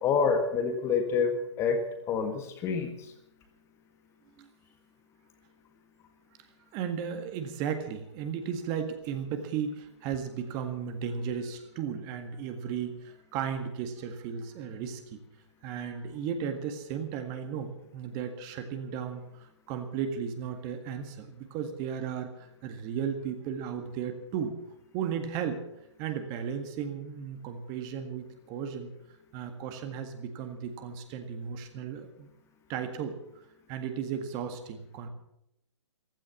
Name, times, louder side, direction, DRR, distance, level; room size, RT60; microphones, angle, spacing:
voice 1, 0.0-3.1, left 5 dB, 20° left, 6 dB, 1.6 m, -28 dB
voice 2, 6.7-15.2 15.6-24.5 24.9-25.6 26.0-28.9 29.3-32.3 32.7-33.2 33.7-35.1, right 7 dB, 25° right, 7 dB, 1.7 m, -35 dB
15.0 x 13.0 x 7.0 m, 0.81 s
figure-of-eight pair, 135°, 15 cm